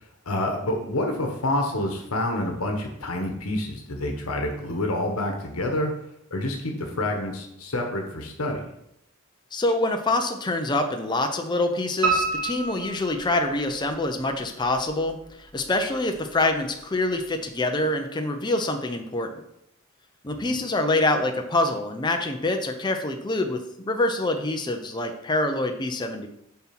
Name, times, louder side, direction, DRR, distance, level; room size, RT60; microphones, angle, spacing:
voice 1, 0.2-5.9 6.3-8.6 20.3-20.4, left 1 dB, 90° left, 2 dB, 1.2 m, -28 dB
voice 2, 9.5-19.4 20.2-26.3, left 2 dB, 20° left, 5 dB, 0.6 m, -25 dB
Piano, 12.0-13.9 14.4-15.2 15.6-15.7 16.1-16.2 16.5-16.6, right 4 dB, 70° right, 2.1 m, -28 dB
7.3 x 4.3 x 5.9 m, 0.78 s
head